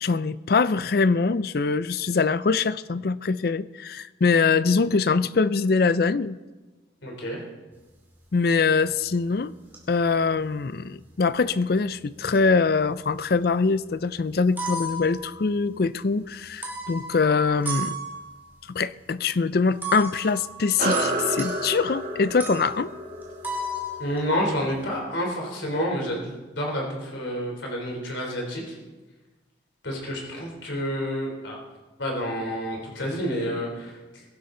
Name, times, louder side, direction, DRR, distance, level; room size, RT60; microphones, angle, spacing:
voice 1, 0.0-6.4 8.3-9.5 9.9-18.0 18.7-22.9, left 4 dB, 55° left, 16 dB, 0.4 m, -23 dB
voice 2, 7.0-7.4 24.0-28.8 29.8-31.6 32.0-34.2, equal, 80° left, -1 dB, 3.4 m, -29 dB
sound 1, 8.7-9.2 9.7-11.2 12.1-13.3 13.6-13.7 14.3-15.9 16.5-18.6 19.8-25.0, right 1 dB, 10° right, 2.5 m, -35 dB
sound 2, 20.8-25.6, right 1 dB, 50° right, 1.8 m, -31 dB
22.0 x 11.5 x 3.9 m, 1.2 s
head